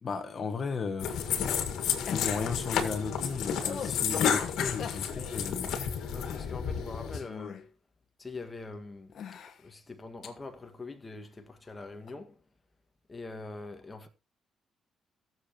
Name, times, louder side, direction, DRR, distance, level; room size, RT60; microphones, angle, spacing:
voice 1, 0.0-1.4 2.1-5.8, left 5 dB, 45° left, 1.6 m, -35 dB
sound 1, 1.0-7.2, left 8 dB, 80° left, 1.9 m, -31 dB
sound 2, 2.1-2.5 3.6-4.1 4.8-5.1 6.3-6.5 6.9-7.7 8.4-8.5 9.1-9.6 10.2-10.3 12.1-12.2, left 7 dB, 65° left, 1.2 m, -42 dB
voice 2, 4.0-4.8 6.1-7.6 8.2-12.4 13.1-14.1, left 3 dB, 25° left, 1.7 m, -43 dB
20.5 x 7.1 x 3.0 m
cardioid pair, 90°, 0 cm